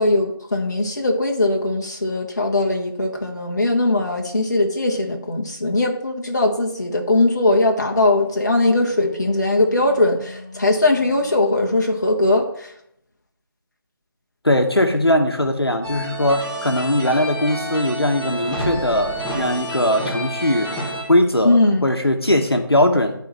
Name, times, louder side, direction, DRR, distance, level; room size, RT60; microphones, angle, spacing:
voice 1, 0.0-12.7 21.4-21.8, left 2 dB, 45° left, 0 dB, 1.3 m, -20 dB
Wind instrument woodwind instrument, 8.3-12.5, left 2 dB, 20° right, 2.6 m, -41 dB
voice 2, 14.4-20.7 21.1-23.1, left 1 dB, 85° left, 5 dB, 1.1 m, -20 dB
sound 1, 15.8-21.0, right 1 dB, ahead, 1.2 m, -29 dB
11.5 x 4.2 x 4.1 m, 0.73 s
figure-of-eight pair, 160°, 13 cm